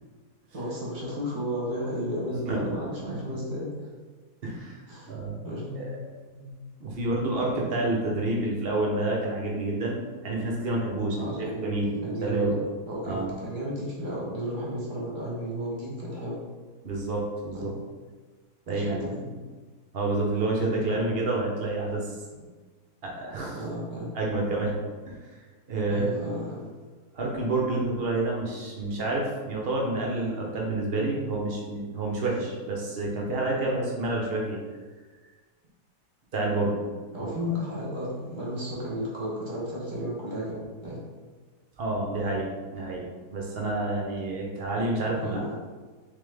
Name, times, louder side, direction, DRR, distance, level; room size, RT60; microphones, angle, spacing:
voice 1, 0.5-3.7 4.9-5.1 5.4-5.9 6.3-6.5 11.2-12.6 12.9-16.4 17.5-17.7 18.7-19.3 23.5-24.1 25.9-26.6 37.1-41.0 45.2-45.5, equal, 35° right, -5 dB, 1.0 m, -33 dB
voice 2, 4.4-4.8 5.1-5.4 5.7-6.0 6.8-11.9 12.2-12.6 13.0-13.3 16.8-17.7 18.7-19.2 19.9-22.1 22.4-22.5 23.0-23.6 24.1-24.8 25.0-25.2 25.7-26.0 27.1-34.6 36.3-36.8 37.2-37.3 41.8-43.0 43.3-45.5, right 2 dB, 55° right, -2 dB, 0.7 m, -28 dB
3.5 x 3.4 x 3.3 m, 1.4 s
omnidirectional pair, 1.8 m